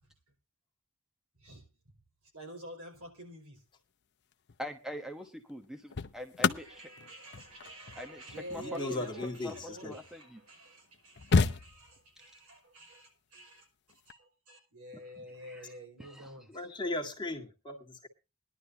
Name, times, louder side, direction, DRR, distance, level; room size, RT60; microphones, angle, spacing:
voice 1, 2.3-3.6 6.5-13.7 14.1-16.6, right 1 dB, 80° right, 5.1 m, -49 dB
sound 1, 4.3-4.6 5.5-10.1 10.7-10.8 10.9-12.2 13.9-14.1, left 4 dB, 55° left, 0.7 m, -32 dB
voice 2, 4.6-6.8 8.0-8.2 8.5-8.6 8.9-9.0 9.4-9.5 9.8-10.4 15.4-15.6 16.0-16.3, equal, ahead, 1.0 m, -43 dB
voice 3, 8.5-10.0 16.5-18.1, left 2 dB, 20° left, 1.8 m, -37 dB
19.5 x 11.0 x 2.8 m
head